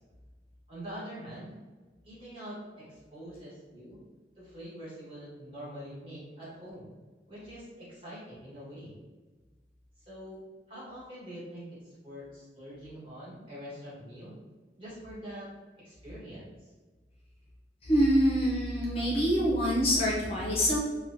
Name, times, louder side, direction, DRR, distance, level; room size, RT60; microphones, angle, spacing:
voice 1, 0.7-1.6 2.0-4.0 4.4-6.9 7.3-9.0 10.0-14.3 14.8-15.5 15.8-16.5, equal, 30° right, -9 dB, 1.2 m, -44 dB
voice 2, 17.8-20.8, equal, 35° left, -5 dB, 0.5 m, -25 dB
2.9 x 2.1 x 2.5 m, 1.3 s
head